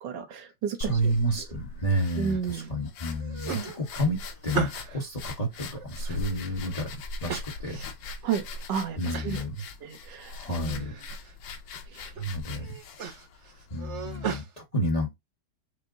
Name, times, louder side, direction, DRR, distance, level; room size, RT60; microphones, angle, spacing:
voice 1, 0.0-0.8 2.2-2.7 8.2-8.4 8.7-9.4 9.8-10.9, right 7 dB, 70° right, 1.4 m, -32 dB
sound 1, 0.8-14.2, left 3 dB, 80° left, 1.5 m, -41 dB
voice 2, 0.8-7.8 9.0-9.7 10.2-10.9 12.2-12.7 13.7-15.1, equal, 25° left, 0.9 m, -30 dB
sound 2, 1.9-2.7 3.1-5.1 5.5-6.7 7.3-8.1 8.5-8.6 9.1-9.4 9.8-10.5 10.8-11.3 11.8-12.2 12.6-14.5, right 6 dB, 50° right, 0.9 m, -37 dB
6.3 x 2.1 x 3.7 m
omnidirectional pair, 2.0 m